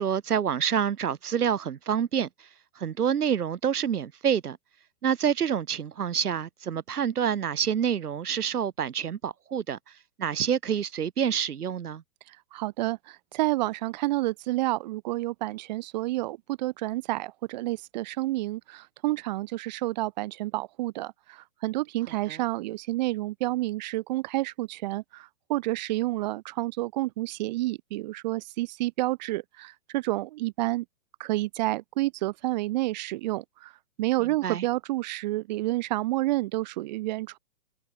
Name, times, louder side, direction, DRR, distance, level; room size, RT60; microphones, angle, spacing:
voice 1, 0.0-2.5 2.8-4.6 5.0-9.8 10.2-12.0 22.3-22.4 34.4-34.7, right 8 dB, 90° right, 2.2 m, -27 dB
voice 2, 12.3-30.8 31.2-33.7 34.0-37.4, right 18 dB, 30° right, 2.2 m, -29 dB
hypercardioid pair, 165°, 44 cm